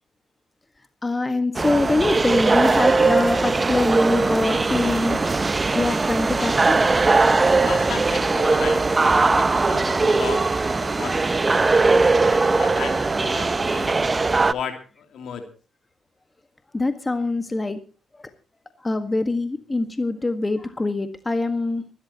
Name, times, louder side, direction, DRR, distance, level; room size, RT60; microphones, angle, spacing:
voice 1, 1.0-5.2 5.7-6.8 16.7-17.8 18.1-18.2 18.8-21.9, left 2 dB, 25° left, 8 dB, 1.6 m, -24 dB
sound 1, 1.5-14.5, right 3 dB, 30° right, 0.8 m, -20 dB
voice 2, 7.6-13.9 14.4-15.5, left 7 dB, 65° left, 5 dB, 3.1 m, -35 dB
26.0 x 12.5 x 3.0 m, 0.36 s
hypercardioid pair, 45°, 0 cm